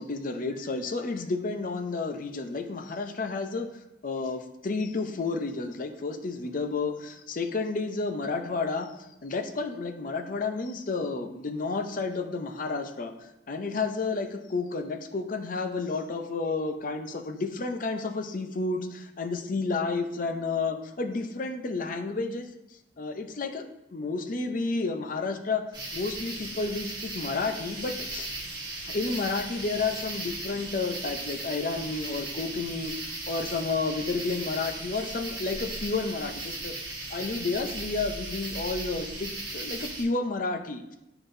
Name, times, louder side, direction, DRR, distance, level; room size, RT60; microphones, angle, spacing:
voice 1, 0.0-3.7 4.0-8.9 9.2-13.1 13.5-22.5 23.0-25.6 25.9-28.3 28.9-36.7 37.1-41.0, left 3 dB, 50° left, 5 dB, 0.6 m, -31 dB
sound 1, 25.7-40.0, right 2 dB, 25° right, 1.4 m, -37 dB
11.0 x 3.9 x 2.6 m, 0.92 s
head